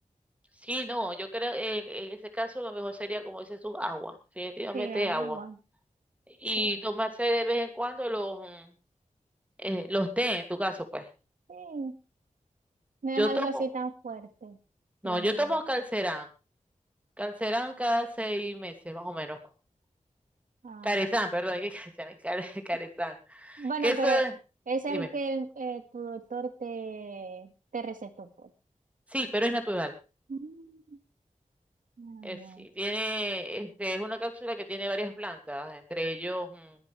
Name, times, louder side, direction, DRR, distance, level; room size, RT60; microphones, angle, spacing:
voice 1, 0.6-5.4 6.3-8.7 9.6-11.1 13.2-13.6 15.0-16.3 17.2-19.4 20.8-24.3 24.9-25.1 29.1-30.0 32.2-36.8, equal, 10° right, 6 dB, 2.6 m, -31 dB
voice 2, 4.7-5.6 6.6-6.7 11.5-12.0 13.0-14.6 15.0-15.5 20.6-21.0 23.6-24.2 24.7-28.5 30.3-31.0 32.0-32.7, right 4 dB, 90° right, 8 dB, 1.9 m, -35 dB
22.0 x 10.5 x 3.4 m, 0.30 s
wide cardioid pair, 85°, 13 cm